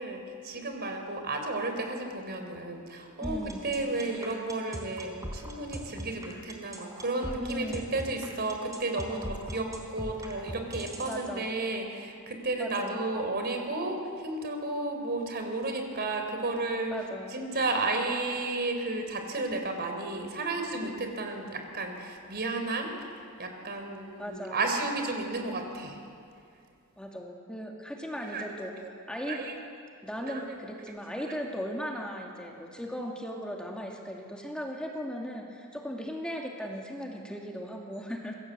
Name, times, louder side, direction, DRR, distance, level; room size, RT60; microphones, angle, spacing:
voice 1, 0.0-22.9 23.4-26.0 28.2-28.9 29.3-29.6 30.2-31.3, right 2 dB, 50° right, 4 dB, 3.9 m, -33 dB
voice 2, 3.2-3.6 7.4-7.8 11.0-11.5 12.6-13.0 16.9-17.4 24.2-24.6 27.0-28.7 29.1-29.4 30.0-38.4, equal, 5° left, 0 dB, 2.2 m, -37 dB
sound 1, 3.2-11.2, equal, 15° right, 4.0 m, -39 dB
26.5 x 22.0 x 8.2 m, 2.4 s
head